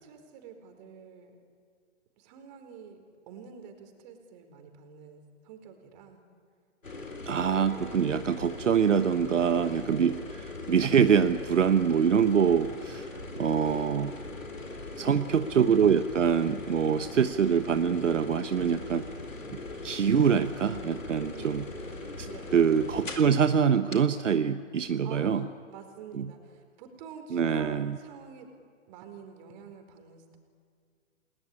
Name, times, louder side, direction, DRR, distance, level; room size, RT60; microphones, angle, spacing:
voice 1, 0.0-1.3 2.2-6.2 15.0-15.5 18.5-19.1 21.2-21.7 22.2-22.7 24.9-28.5 28.9-30.4, right 6 dB, 35° right, 6 dB, 4.5 m, -48 dB
sound 1, 6.8-23.4 23.9-24.0, left 3 dB, 90° left, 4.0 m, -40 dB
voice 2, 7.2-13.1 13.4-14.1 15.0-19.0 19.8-21.6 22.5-25.5 26.1-26.3 27.3-28.0, right 7 dB, 75° right, 10 dB, 1.2 m, -24 dB
29.5 x 20.0 x 9.8 m, 2.1 s
figure-of-eight pair, 130°, 38 cm